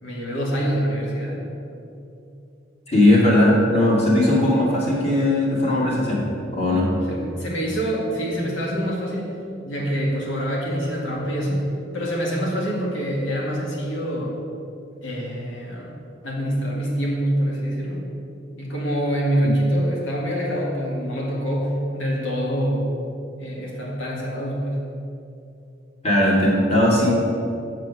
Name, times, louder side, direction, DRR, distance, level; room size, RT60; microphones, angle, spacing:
voice 1, 0.0-1.5 7.0-9.4 9.7-11.6 11.9-14.4 15.0-15.9 16.2-18.1 18.6-22.9 23.4-24.8, equal, 85° left, -3 dB, 2.0 m, -25 dB
voice 2, 2.9-6.2 6.5-6.9 26.0-27.1, left 1 dB, 35° left, -4 dB, 2.2 m, -18 dB
7.7 x 7.5 x 6.2 m, 2.6 s
head